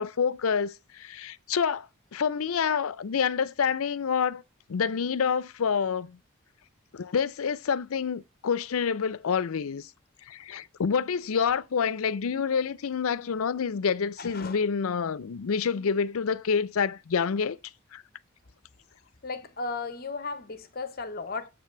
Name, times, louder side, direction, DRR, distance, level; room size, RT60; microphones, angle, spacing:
voice 1, 0.0-1.9 2.1-4.4 4.7-6.2 6.9-9.9 10.3-17.6 17.9-18.0, left 6 dB, 75° left, 0.5 m, -27 dB
voice 2, 14.2-14.6 19.2-21.5, left 4 dB, 45° left, 0.9 m, -35 dB
8.6 x 3.3 x 6.6 m
head